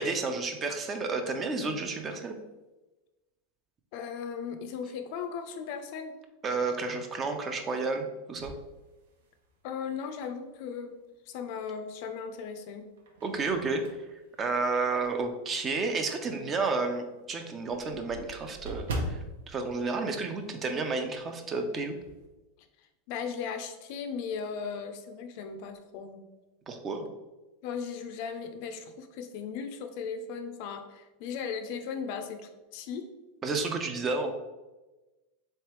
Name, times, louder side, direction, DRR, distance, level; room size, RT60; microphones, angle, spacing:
voice 1, 0.0-2.3 6.4-8.5 13.2-13.8 14.4-19.2 19.5-22.0 26.7-27.0 33.4-34.3, right 3 dB, 20° right, 6 dB, 0.4 m, -31 dB
voice 2, 3.9-6.2 9.6-10.9 11.3-12.9 23.1-26.2 27.6-33.1, left 6 dB, 55° left, 7 dB, 0.4 m, -37 dB
sound 1, 8.3-9.7 10.2-10.3 11.8-12.3 12.8-15.4 15.9-16.0 16.4-16.5 16.7-16.8 17.1-20.9 21.1-21.4 21.7-22.3, right 1 dB, 85° right, 0.6 m, -41 dB
3.5 x 3.3 x 3.0 m, 1.1 s
supercardioid pair, 145°, 0 cm